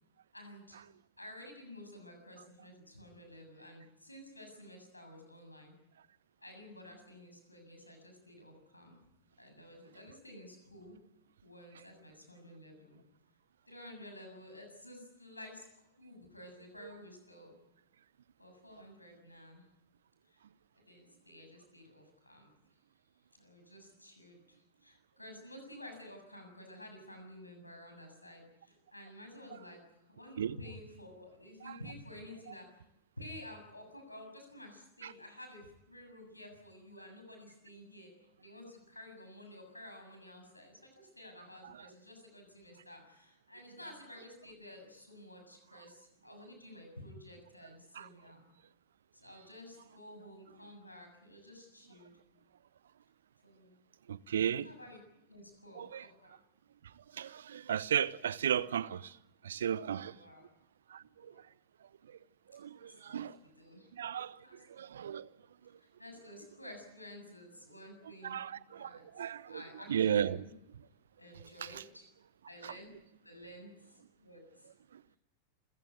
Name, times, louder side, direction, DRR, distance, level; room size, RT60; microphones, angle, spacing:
voice 1, 0.3-0.8 1.2-5.7 6.4-9.0 9.4-10.9 11.4-13.0 13.7-15.7 16.0-17.5 18.4-19.7 20.3-20.4 20.9-22.5 23.3-32.8 33.2-38.1 38.4-48.4 49.1-52.1 53.4-53.7 54.6-55.0 55.3-56.4 60.0-60.4 61.3-61.4 62.8-63.9 64.4-65.2 65.8-68.4 68.7-70.5 71.2-72.1 72.5-72.9 73.2-74.7, left 1 dB, 85° left, 7.2 m, -52 dB
voice 2, 54.1-54.7 55.7-56.1 57.0-59.2 59.4-60.2 60.9-61.3 62.1-62.2 62.5-63.4 63.9-65.3 68.2-69.6 69.9-70.4 71.7-71.8 72.6-72.7 74.9-75.0, right 9 dB, 65° right, 0.8 m, -35 dB
27.5 x 16.0 x 9.4 m
figure-of-eight pair, 90°, 0 cm